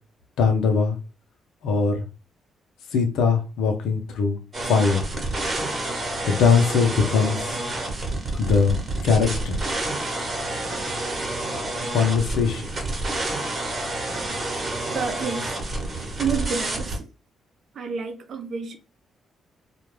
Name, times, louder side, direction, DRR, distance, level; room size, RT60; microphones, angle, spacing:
voice 1, 0.4-1.0 1.6-2.1 2.9-4.4 4.7-5.0 6.2-7.4 8.3-9.6 11.9-12.7, left 5 dB, 85° left, 0.7 m, -21 dB
sound 1, 4.5-17.0, right 2 dB, 40° right, 1.1 m, -29 dB
voice 2, 14.9-15.6 16.2-17.1 17.7-18.8, right 5 dB, 60° right, 0.6 m, -29 dB
2.4 x 2.2 x 3.1 m
cardioid pair, 80°, 0 cm